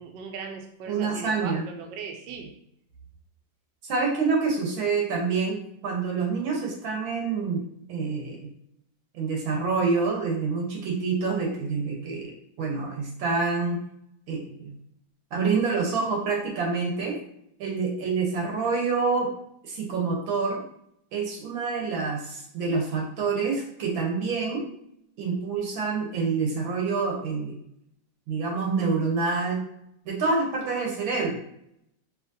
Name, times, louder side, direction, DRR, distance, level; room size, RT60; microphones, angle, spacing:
voice 1, 0.0-2.5, right 5 dB, 75° right, 3 dB, 1.2 m, -38 dB
voice 2, 0.9-1.6 3.8-7.6 7.9-8.5 9.1-13.8 14.3-14.8 15.3-17.2 17.6-19.3 19.7-20.6 21.1-24.6 25.2-27.6 28.3-29.6 30.1-31.4, right 4 dB, 90° right, 0 dB, 1.8 m, -27 dB
4.9 x 3.1 x 2.6 m, 0.73 s
omnidirectional pair, 2.1 m